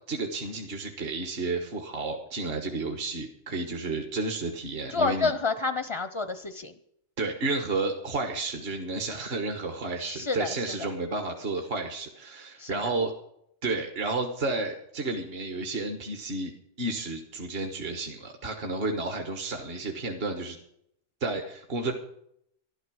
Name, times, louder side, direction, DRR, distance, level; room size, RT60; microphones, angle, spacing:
voice 1, 0.0-5.3 7.2-13.1 13.6-16.5 16.8-20.6 21.2-21.9, right 3 dB, 55° right, 4 dB, 1.4 m, -31 dB
voice 2, 4.9-6.7 10.0-10.9 12.6-12.9, left 4 dB, 30° left, 10 dB, 0.5 m, -29 dB
12.5 x 12.0 x 6.2 m, 0.73 s
omnidirectional pair, 1.3 m